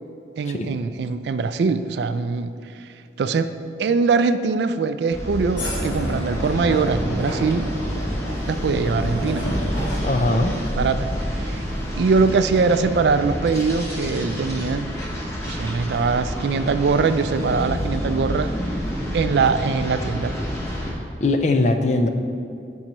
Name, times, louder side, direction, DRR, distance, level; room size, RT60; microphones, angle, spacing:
voice 1, 0.4-2.5 3.2-3.5 3.8-7.7 8.5-9.5 10.3-10.4 10.7-11.6 12.0-14.9 15.4-18.5 19.1-20.4, right 4 dB, 70° right, 11 dB, 0.3 m, -22 dB
sound 1, 5.1-20.9, equal, 15° left, 1.1 m, -29 dB
sound 2, 5.6-11.3, equal, 80° left, 2.0 m, -30 dB
voice 2, 10.0-10.6 21.2-22.1, left 2 dB, 40° left, 6 dB, 0.4 m, -20 dB
12.0 x 5.4 x 3.0 m, 2.6 s
head